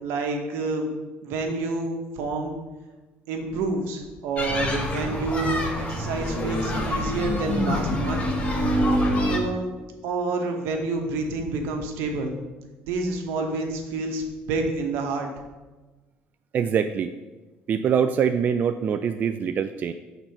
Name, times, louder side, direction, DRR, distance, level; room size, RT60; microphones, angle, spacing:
voice 1, 0.0-0.9 1.2-2.6 3.3-8.3 9.2-9.7 10.0-12.3 12.8-15.3, right 3 dB, 80° right, 3 dB, 1.1 m, -28 dB
sound 1, 4.4-9.4, left 1 dB, 35° left, 1.4 m, -25 dB
voice 2, 16.5-17.1 17.7-19.9, right 7 dB, 45° right, 8 dB, 0.3 m, -24 dB
6.1 x 4.0 x 5.8 m, 1.2 s
cardioid pair, 100°, 4 cm